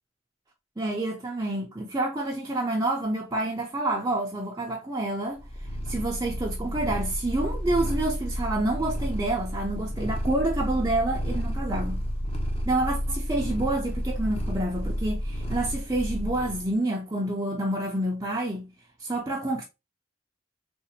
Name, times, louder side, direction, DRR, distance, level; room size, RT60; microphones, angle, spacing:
voice 1, 0.8-12.0 12.6-18.7 19.0-19.6, right 2 dB, 20° right, 0.6 m, -28 dB
Purr, 5.4-16.7, equal, 30° left, 0.9 m, -31 dB
3.8 x 2.5 x 2.8 m
head